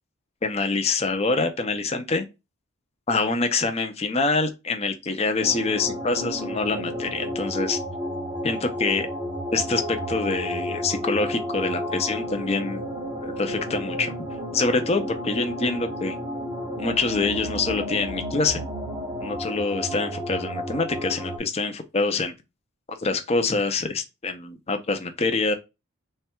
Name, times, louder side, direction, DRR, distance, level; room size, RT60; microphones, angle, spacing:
voice 1, 0.4-2.3 3.1-7.8 8.4-9.1 9.5-12.8 13.2-14.1 14.5-16.2 16.8-18.6 19.2-22.3 22.9-25.5, left 3 dB, 30° left, 0.5 m, -25 dB
sound 1, 5.4-21.4, equal, 20° right, 0.8 m, -32 dB
3.2 x 2.3 x 4.3 m
head